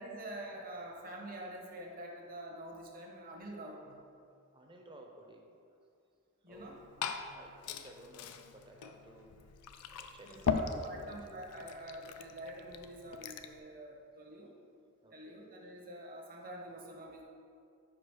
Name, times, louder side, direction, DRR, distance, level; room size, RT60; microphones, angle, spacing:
voice 1, 0.0-4.0 6.4-6.8 10.2-14.5 15.1-17.2, right 1 dB, 40° right, 0 dB, 1.1 m, -46 dB
voice 2, 4.5-5.8 6.5-6.8 7.3-9.4 9.8-11.1 15.0-15.2, right 1 dB, 20° right, 1 dB, 0.8 m, -55 dB
Glass / Fill (with liquid), 6.5-13.6, left 6 dB, 80° left, 0.4 m, -40 dB
5.1 x 4.9 x 6.2 m, 2.4 s
head